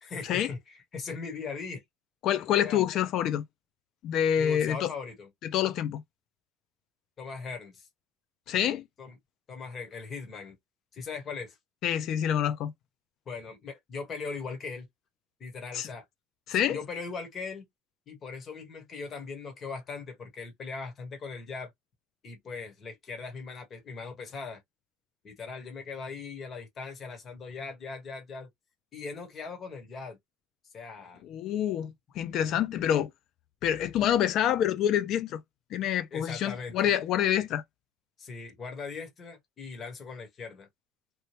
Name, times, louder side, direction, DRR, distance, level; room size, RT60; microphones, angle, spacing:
voice 1, 0.0-1.8 2.6-2.8 4.4-5.3 7.2-7.9 9.0-9.2 9.5-10.6 10.9-11.6 13.3-14.9 15.4-16.0 16.5-17.6 18.1-21.7 22.2-24.6 25.2-28.5 28.9-30.2 30.7-31.2 36.1-36.8 38.2-40.7, left 4 dB, 25° left, 1.1 m, -39 dB
voice 2, 2.2-3.4 4.0-4.9 5.5-6.0 8.5-8.8 11.8-12.7 15.7-15.9 16.5-16.8 31.2-33.1 33.6-35.4 35.7-37.6, left 10 dB, 45° left, 0.4 m, -27 dB
2.9 x 2.2 x 3.0 m
cardioid pair, 160°, 0 cm